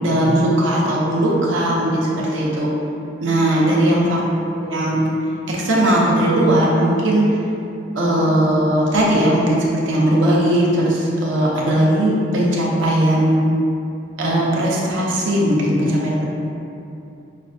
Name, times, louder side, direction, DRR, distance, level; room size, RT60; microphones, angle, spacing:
voice 1, 0.0-2.7 3.2-4.2 4.5-5.0 5.5-7.3 7.9-13.4 14.2-16.2, right 1 dB, 70° right, -4 dB, 0.7 m, -18 dB
5.8 x 2.1 x 2.6 m, 2.6 s
head